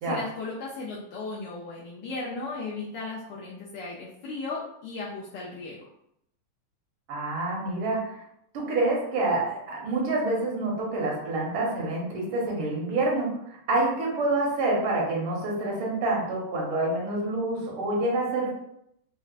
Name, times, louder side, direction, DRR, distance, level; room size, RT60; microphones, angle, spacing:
voice 1, 0.0-5.9, left 3 dB, 75° left, -5 dB, 1.1 m, -36 dB
voice 2, 7.1-8.2 8.5-13.3 13.7-18.5, right 2 dB, 80° right, -3 dB, 1.7 m, -27 dB
4.5 x 2.0 x 2.4 m, 0.75 s
omnidirectional pair, 2.3 m